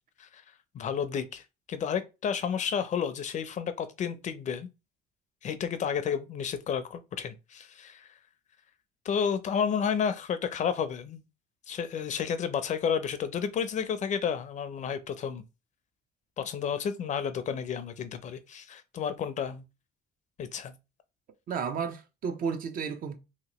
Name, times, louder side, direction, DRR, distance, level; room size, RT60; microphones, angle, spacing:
voice 1, 0.7-4.7 5.4-8.1 9.0-11.2 11.7-15.4 16.4-19.6 20.4-20.7, left 7 dB, 45° left, 0.5 m, -31 dB
voice 2, 21.5-23.2, right 6 dB, 55° right, 0.6 m, -32 dB
3.0 x 2.9 x 2.9 m
cardioid pair, 110°, 17 cm